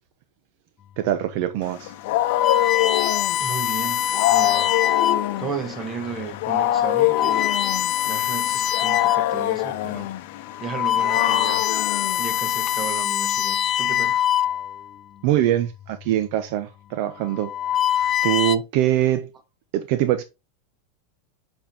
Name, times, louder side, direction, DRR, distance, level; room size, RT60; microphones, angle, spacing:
voice 1, 1.0-1.9 15.2-17.5 18.2-19.3 19.7-20.2, right 12 dB, 60° right, 0.7 m, -23 dB
sound 1, 1.2-1.4 2.1-5.5 6.2-6.4 6.9-9.4 9.8-10.0 10.5-14.9 15.9-16.3 17.2-18.6, left 11 dB, 30° left, 0.5 m, -24 dB
Wild animals, 1.7-12.9, left 14 dB, 65° left, 0.7 m, -25 dB
voice 2, 3.4-5.1 5.3-7.7 8.0-10.1 10.6-11.7 12.2-14.2, right 5 dB, 25° right, 1.5 m, -34 dB
7.2 x 5.3 x 2.9 m
supercardioid pair, 125°, 0 cm